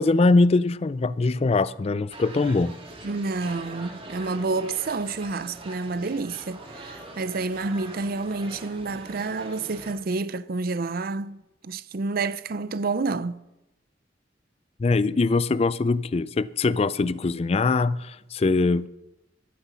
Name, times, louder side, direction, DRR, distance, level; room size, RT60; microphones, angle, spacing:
voice 1, 0.0-2.7 14.8-18.9, left 3 dB, 35° left, 0.4 m, -22 dB
sound 1, 2.1-9.9, right 2 dB, 30° right, 2.2 m, -43 dB
voice 2, 3.0-11.4 11.6-13.4, right 3 dB, 55° right, 0.5 m, -29 dB
14.0 x 12.0 x 5.7 m
head